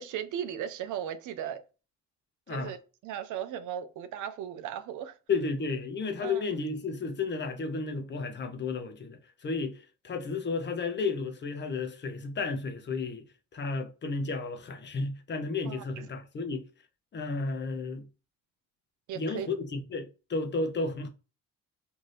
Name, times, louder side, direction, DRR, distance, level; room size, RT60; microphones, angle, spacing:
voice 1, 0.0-1.6 2.5-2.8 3.0-5.1 6.2-6.4 15.7-15.8 19.1-19.5, right 9 dB, 80° right, 0.5 m, -36 dB
voice 2, 5.3-13.3 13.5-16.7 17.1-18.1 19.1-21.1, left 4 dB, 35° left, 0.6 m, -33 dB
2.6 x 2.6 x 3.2 m
cardioid pair, 90°, 30 cm